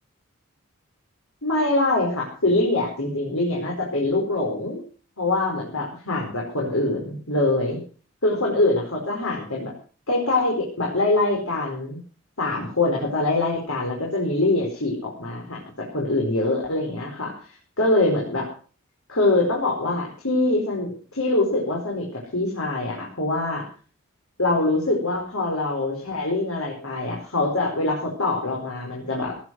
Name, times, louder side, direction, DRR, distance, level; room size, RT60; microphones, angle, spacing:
voice 1, 1.4-4.8 5.2-7.8 8.2-9.7 10.1-12.0 12.4-17.4 17.8-18.5 19.1-23.6 24.4-29.4, left 2 dB, 75° left, -2 dB, 5.1 m, -24 dB
18.5 x 10.0 x 6.3 m, 0.42 s
head